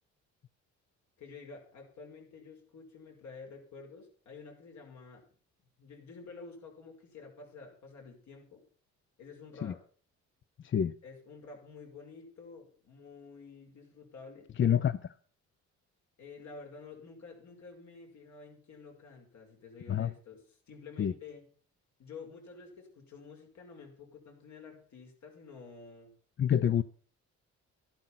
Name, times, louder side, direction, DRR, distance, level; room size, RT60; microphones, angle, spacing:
voice 1, 1.2-5.3 5.8-8.7 9.2-9.8 11.0-14.5 16.2-21.5 22.0-26.1, left 4 dB, 70° left, 5.6 m, -50 dB
voice 2, 14.6-15.1 19.9-20.1 21.0-21.1 26.4-26.8, left 9 dB, 40° left, 0.6 m, -27 dB
12.5 x 11.5 x 5.8 m
cardioid pair, 90°, 30 cm